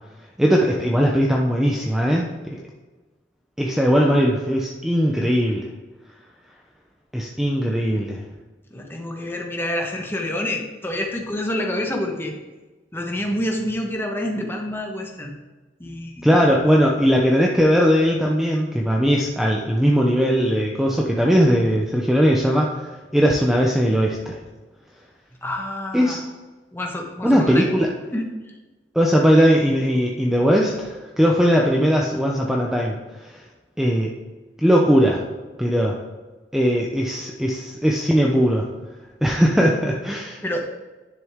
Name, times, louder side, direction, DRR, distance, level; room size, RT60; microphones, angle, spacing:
voice 1, 0.4-2.6 3.6-5.7 7.1-8.2 16.2-24.4 25.9-26.2 27.2-27.9 28.9-33.4 33.8-34.1 34.6-35.2 35.6-36.0 36.5-38.7 39.2-40.6, equal, 5° right, -1 dB, 0.8 m, -19 dB
voice 2, 8.7-12.4 12.9-15.3 15.8-16.5 25.4-26.2 26.7-27.6 28.1-28.5 40.4-40.6, left 1 dB, 15° left, 1 dB, 1.3 m, -28 dB
10.5 x 6.7 x 3.7 m, 1.2 s
head